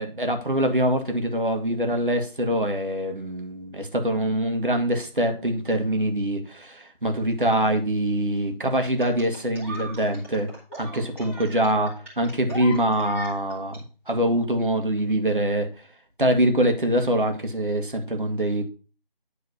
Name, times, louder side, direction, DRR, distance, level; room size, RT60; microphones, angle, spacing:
voice 1, 0.0-10.5 10.8-13.8 14.1-15.7 16.2-18.7, right 1 dB, 60° right, 5 dB, 1.9 m, -24 dB
sound 1, 9.0-13.8 15.0-15.1, right 1 dB, 15° right, 2.1 m, -39 dB
9.8 x 3.9 x 5.6 m, 0.36 s
figure-of-eight pair, 170°, 29 cm